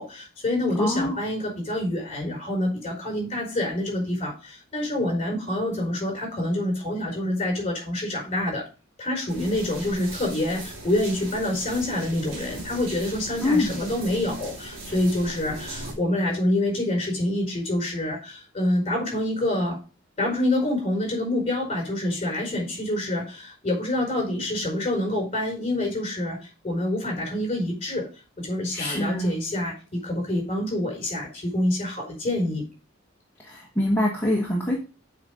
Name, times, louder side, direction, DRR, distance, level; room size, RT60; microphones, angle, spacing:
voice 1, 0.0-8.6 9.0-19.8 20.2-28.1 28.4-32.6, left 1 dB, 30° left, -1 dB, 4.9 m, -27 dB
voice 2, 0.8-1.1 13.4-13.8 28.7-29.3 33.5-34.8, left 1 dB, 10° left, -4 dB, 1.3 m, -24 dB
sound 1, 9.3-15.9, right 2 dB, 70° right, 2.5 m, -39 dB
8.1 x 4.1 x 5.1 m, 0.33 s
head